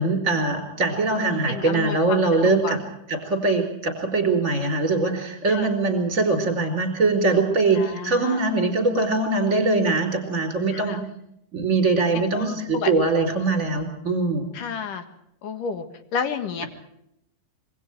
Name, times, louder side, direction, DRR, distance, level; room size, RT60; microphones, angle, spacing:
voice 1, 0.0-2.8 3.1-11.0 11.5-14.5, right 3 dB, 20° right, 6 dB, 4.6 m, -22 dB
voice 2, 1.5-2.8 5.5-5.7 7.7-8.4 10.7-11.0 12.3-12.9 14.5-15.0 15.4-15.8 16.1-16.7, left 6 dB, 60° left, 8 dB, 3.2 m, -31 dB
27.0 x 22.5 x 4.6 m, 0.76 s
omnidirectional pair, 4.6 m